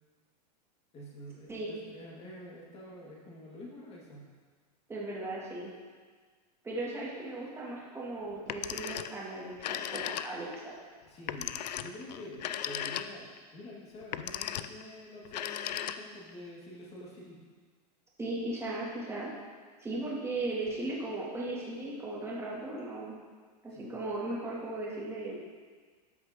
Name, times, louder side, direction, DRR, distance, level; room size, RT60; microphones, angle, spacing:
voice 1, 0.9-4.3 11.1-17.4 23.7-24.0, left 1 dB, 30° left, -4 dB, 2.3 m, -47 dB
voice 2, 4.9-5.7 6.6-10.7 18.2-19.3 19.8-23.2 23.6-25.4, right 2 dB, 10° right, -6 dB, 2.3 m, -37 dB
Telephone, 8.4-9.2 9.5-10.6 11.3-13.4 14.0-14.8 15.3-16.3, left 10 dB, 80° left, 0.4 m, -37 dB
13.0 x 5.8 x 3.0 m, 1.5 s
hypercardioid pair, 120°, 21 cm